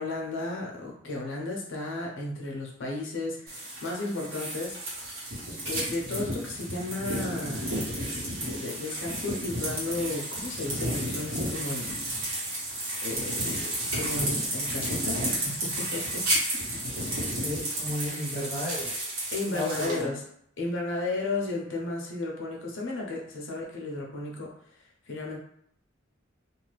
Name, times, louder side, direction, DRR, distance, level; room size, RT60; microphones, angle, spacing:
voice 1, 0.0-4.8 5.6-11.9 13.0-16.2 18.0-18.2 19.3-20.2 20.6-24.5 25.1-25.4, left 2 dB, 65° left, -1 dB, 0.8 m, -34 dB
sound 1, 3.5-20.0, right 1 dB, 85° right, 1.3 m, -32 dB
voice 2, 17.1-19.1 19.5-20.1, equal, 35° right, -6 dB, 1.2 m, -34 dB
2.8 x 2.3 x 3.2 m, 0.70 s
head